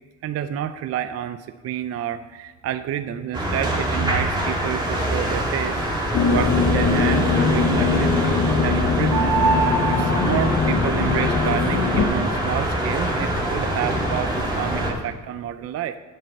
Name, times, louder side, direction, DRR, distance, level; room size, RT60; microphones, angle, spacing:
voice 1, 0.2-1.4 1.6-5.9 6.3-9.3 9.9-16.0, right 11 dB, 55° right, 11 dB, 0.5 m, -29 dB
sound 1, 3.3-14.9, right 1 dB, 15° right, 2.1 m, -24 dB
sound 2, 6.1-12.0, left 5 dB, 60° left, 1.0 m, -22 dB
8.8 x 5.4 x 7.7 m, 1.4 s
cardioid pair, 130°, 30 cm